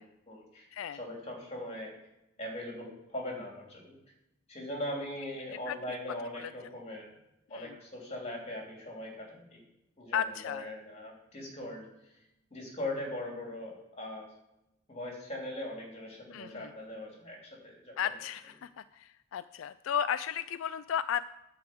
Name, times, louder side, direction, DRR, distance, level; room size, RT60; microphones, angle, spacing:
voice 1, 0.0-1.9 2.4-4.0 4.5-7.1 7.5-9.6 10.0-12.2 12.5-14.3 14.9-18.0, left 1 dB, 35° left, -1 dB, 3.0 m, -40 dB
voice 2, 10.1-10.7 16.3-16.7 18.0-21.2, left 8 dB, 85° left, 13 dB, 0.4 m, -34 dB
10.0 x 4.8 x 7.8 m, 0.90 s
head